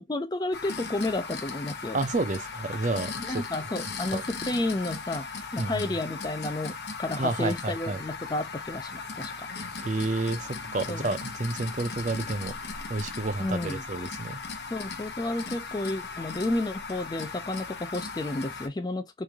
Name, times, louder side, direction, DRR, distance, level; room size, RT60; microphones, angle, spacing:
voice 1, 0.0-2.0 3.2-5.3 5.5-9.5 10.9-11.1 13.4-13.8 14.7-19.2, left 2 dB, 20° left, 0.4 m, -31 dB
sound 1, 0.5-18.7, left 4 dB, 65° left, 0.8 m, -38 dB
voice 2, 1.9-3.5 4.1-4.2 5.6-5.8 7.2-8.0 9.8-12.5 12.9-14.4, right 2 dB, 45° right, 0.6 m, -30 dB
3.2 x 2.6 x 3.5 m
head